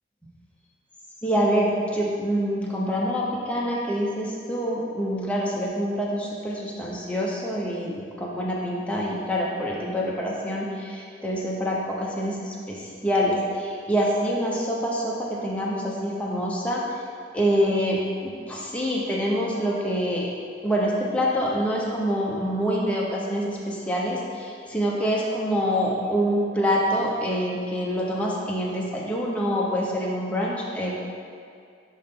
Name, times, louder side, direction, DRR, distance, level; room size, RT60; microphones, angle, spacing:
voice 1, 1.2-16.8 17.3-20.3 20.6-30.9, equal, 5° left, -4 dB, 0.9 m, -26 dB
10.0 x 3.9 x 3.7 m, 2.3 s
head